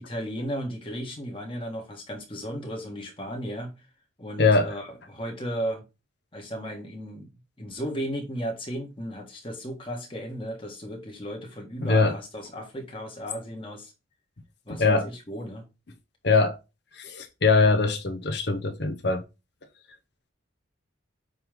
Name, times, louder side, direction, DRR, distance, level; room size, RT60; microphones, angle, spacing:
voice 1, 0.0-3.7 4.2-5.8 6.3-7.3 7.6-13.9 14.6-15.6, equal, 25° left, 1.6 m, -35 dB
voice 2, 4.4-4.7 11.8-12.1 14.8-15.1 16.2-16.6 17.0-19.2, left 4 dB, 55° left, 0.8 m, -22 dB
8.4 x 3.1 x 3.7 m
head